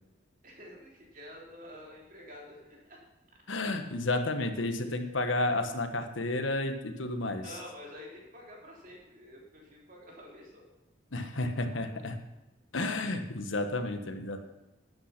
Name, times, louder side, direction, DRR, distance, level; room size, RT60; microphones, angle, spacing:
voice 1, 0.4-3.0 7.4-10.6, equal, 45° right, -2 dB, 3.5 m, -48 dB
voice 2, 3.5-7.4 11.1-12.2 12.7-14.4, left 2 dB, 80° left, 7 dB, 1.3 m, -31 dB
12.0 x 9.4 x 5.9 m, 1.0 s
head